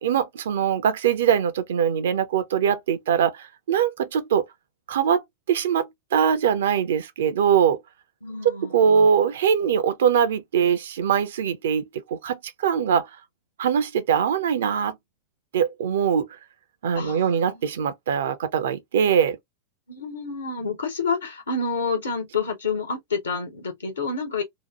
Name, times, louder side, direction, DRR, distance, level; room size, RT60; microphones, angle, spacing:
voice 1, 0.0-4.5 4.9-7.8 8.4-13.1 13.6-15.0 15.5-16.3 16.8-19.4, right 8 dB, 60° right, 0.5 m, -22 dB
voice 2, 8.2-9.1 16.9-17.7 19.9-24.4, left 4 dB, 70° left, 1.2 m, -29 dB
2.9 x 2.1 x 2.9 m
figure-of-eight pair, 90°, 0 cm